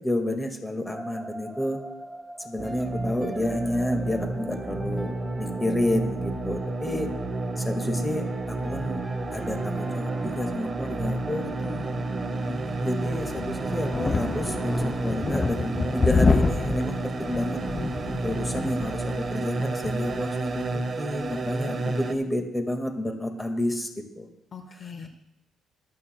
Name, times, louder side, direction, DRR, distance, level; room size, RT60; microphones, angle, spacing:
voice 1, 0.0-1.8 2.4-5.1 5.4-7.1 7.6-9.0 9.3-11.5 12.4-17.6 18.2-24.3, left 1 dB, 10° left, 4 dB, 1.8 m, -30 dB
sound 1, 0.9-15.0, right 1 dB, 10° right, 1.5 m, -41 dB
sound 2, 2.6-22.1, right 2 dB, 40° right, 1.1 m, -31 dB
voice 2, 11.4-12.1 24.5-25.1, left 5 dB, 50° left, 5 dB, 1.2 m, -41 dB
sound 3, 12.8-20.3, left 4 dB, 30° left, 0.4 m, -28 dB
24.5 x 8.5 x 2.2 m, 0.85 s
cardioid pair, 90°, 0 cm